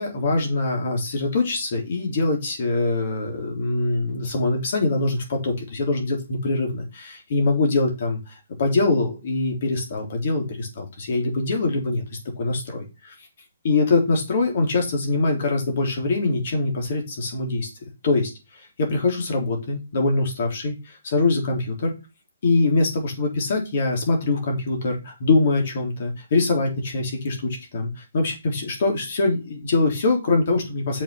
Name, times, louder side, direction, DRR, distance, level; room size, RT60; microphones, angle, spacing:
voice 1, 0.0-8.3 8.6-12.0 12.4-13.1 13.6-17.7 18.0-18.3 18.8-21.9 22.4-31.0, left 3 dB, 50° left, 3 dB, 3.7 m, -23 dB
7.1 x 5.8 x 5.9 m, 0.28 s
hypercardioid pair, 165°, 0 cm